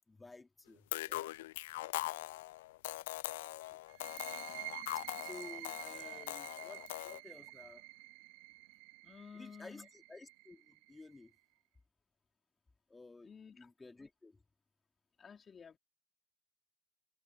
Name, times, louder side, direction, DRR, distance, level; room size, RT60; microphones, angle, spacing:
voice 1, 0.1-1.3 3.7-3.8 4.9-7.9 9.3-11.3 12.9-14.4, left 3 dB, 15° left, 2.2 m, -54 dB
sound 1, 0.9-7.2, left 17 dB, 85° left, 0.3 m, -42 dB
sound 2, 3.9-11.3, right 19 dB, 75° right, 2.0 m, -49 dB
voice 2, 9.0-9.9 13.2-13.6 15.2-15.8, left 6 dB, 30° left, 3.1 m, -53 dB
supercardioid pair, 95°, 0 cm